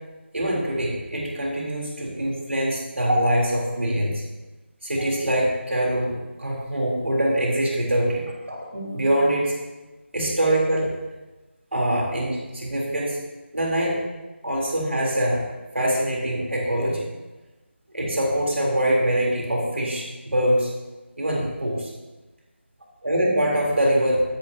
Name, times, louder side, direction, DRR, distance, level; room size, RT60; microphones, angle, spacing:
voice 1, 0.3-4.2 4.8-9.5 10.1-11.0 11.7-13.2 13.5-14.0 14.4-15.4 15.7-17.1 17.9-20.7 21.2-21.9 23.0-24.2, right 1 dB, 75° right, -2 dB, 3.7 m, -24 dB
16.0 x 11.5 x 2.9 m, 1.1 s
figure-of-eight pair, 165°, 7 cm